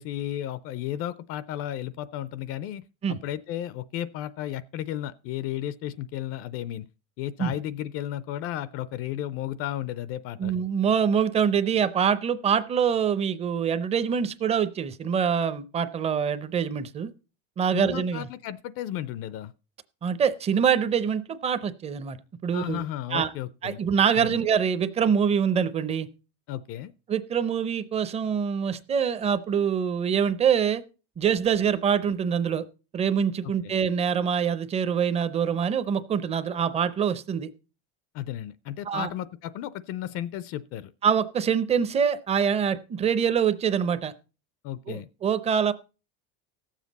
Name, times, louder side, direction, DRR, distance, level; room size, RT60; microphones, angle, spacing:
voice 1, 0.0-6.9 7.2-10.5 17.7-19.5 22.5-23.8 24.1-24.4 26.5-26.9 33.4-33.7 38.1-40.9 44.6-45.1, left 12 dB, 45° left, 0.5 m, -34 dB
voice 2, 10.4-17.1 17.6-18.3 20.0-22.2 22.4-22.8 23.1-23.3 23.6-26.1 27.1-30.8 31.2-32.6 32.9-37.5 38.9-39.1 41.0-44.1 44.9-45.7, right 7 dB, 20° right, 0.6 m, -25 dB
17.5 x 7.4 x 4.0 m
cardioid pair, 160°, 32 cm